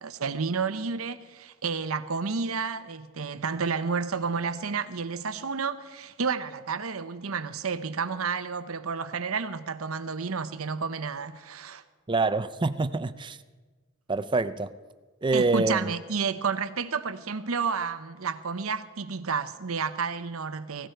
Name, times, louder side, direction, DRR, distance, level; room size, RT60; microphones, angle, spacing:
voice 1, 0.0-11.8 15.3-20.9, right 5 dB, 85° right, 0.9 m, -31 dB
voice 2, 12.1-13.4 14.1-14.8 15.2-15.9, right 3 dB, 25° right, 0.5 m, -26 dB
18.0 x 17.0 x 4.6 m
head